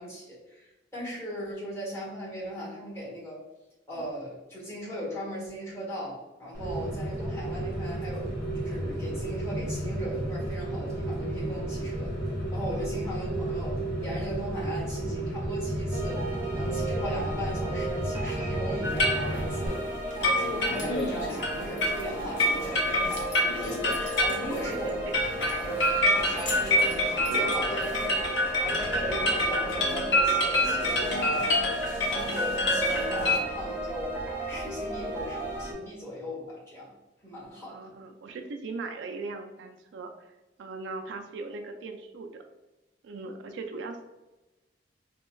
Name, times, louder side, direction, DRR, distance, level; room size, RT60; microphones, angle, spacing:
voice 1, 0.0-3.4 3.9-12.1 12.5-23.9 24.2-24.9 25.4-28.2 28.6-36.9 37.2-37.9, equal, 15° left, -6 dB, 1.3 m, -38 dB
Rain, 6.5-19.7, right 1 dB, 55° left, 1.3 m, -32 dB
sound 1, 15.9-35.7, right 2 dB, 10° right, 0.6 m, -35 dB
sound 2, 18.8-33.4, left 1 dB, 80° left, 0.7 m, -27 dB
voice 2, 24.3-24.9 37.7-40.1 40.6-42.4 43.0-44.0, right 3 dB, 80° right, 4 dB, 0.3 m, -39 dB
4.2 x 2.2 x 2.2 m, 1.1 s
head